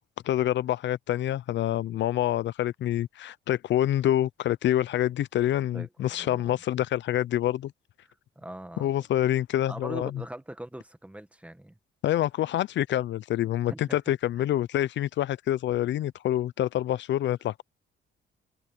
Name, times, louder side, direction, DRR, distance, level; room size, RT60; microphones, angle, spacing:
voice 1, 0.2-7.7 8.8-10.1 12.0-17.6, left 12 dB, 65° left, 0.5 m, -27 dB
voice 2, 5.7-6.6 8.0-8.9 9.7-11.8 13.7-14.0, right 1 dB, 5° right, 1.5 m, -42 dB
cardioid pair, 90°, 20 cm